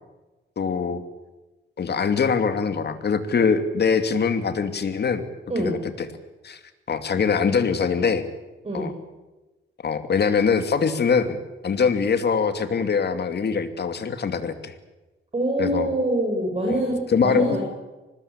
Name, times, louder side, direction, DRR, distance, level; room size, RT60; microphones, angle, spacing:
voice 1, 0.6-1.0 1.8-5.2 5.6-5.8 6.4-6.6 6.9-8.2 8.7-8.9 9.8-11.4 11.6-14.7 15.6-15.9 16.6-16.8 17.1-17.6, left 5 dB, 55° left, 9 dB, 2.7 m, -23 dB
voice 2, 15.3-17.6, right 1 dB, 30° right, -1 dB, 7.9 m, -25 dB
25.0 x 20.5 x 8.9 m, 1.1 s
cardioid pair, 115°, 21 cm